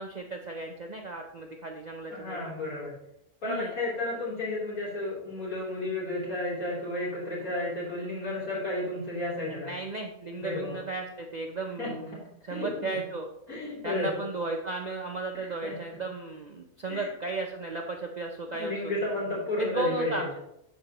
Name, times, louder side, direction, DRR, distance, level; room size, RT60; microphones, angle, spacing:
voice 1, 0.0-2.5 3.4-3.7 9.5-13.3 13.8-18.9 19.6-20.3, right 2 dB, 50° right, 2 dB, 0.5 m, -35 dB
voice 2, 2.1-2.9 3.4-9.7 10.4-10.7 11.8-12.2 12.5-13.0 13.5-14.1 15.6-15.7 16.9-17.1 18.5-20.3, left 2 dB, 80° left, -7 dB, 3.7 m, -32 dB
12.5 x 4.5 x 2.9 m, 0.82 s
omnidirectional pair, 1.5 m